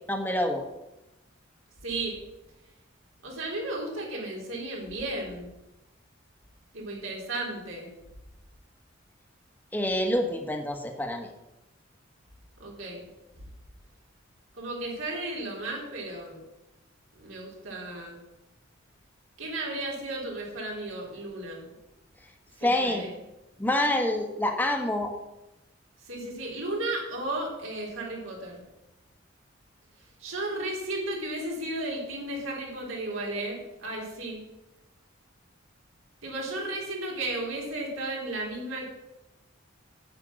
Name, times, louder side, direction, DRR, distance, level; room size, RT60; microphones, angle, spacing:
voice 1, 0.1-0.6 9.7-11.3 22.6-23.1 23.6-25.1, left 1 dB, 10° left, 4 dB, 1.3 m, -27 dB
voice 2, 1.8-2.2 3.2-5.5 6.7-7.9 12.6-13.1 14.5-16.4 17.1-18.2 19.4-21.7 22.6-23.1 26.0-28.6 30.2-34.4 36.2-38.8, right 2 dB, 80° right, -2 dB, 3.9 m, -34 dB
10.5 x 8.6 x 6.2 m, 0.96 s
head